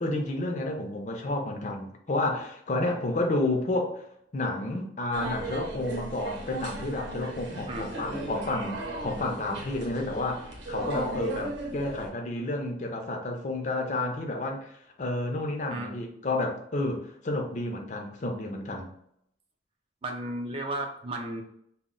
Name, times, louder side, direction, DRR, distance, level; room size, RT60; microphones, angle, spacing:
voice 1, 0.0-4.1 4.3-14.7 15.0-18.9, left 2 dB, 40° left, 2 dB, 0.4 m, -31 dB
sound 1, 5.1-12.1, right 1 dB, 75° right, 0.7 m, -36 dB
voice 2, 20.0-21.4, right 1 dB, 30° right, 2 dB, 0.3 m, -34 dB
2.1 x 2.0 x 3.6 m, 0.71 s
head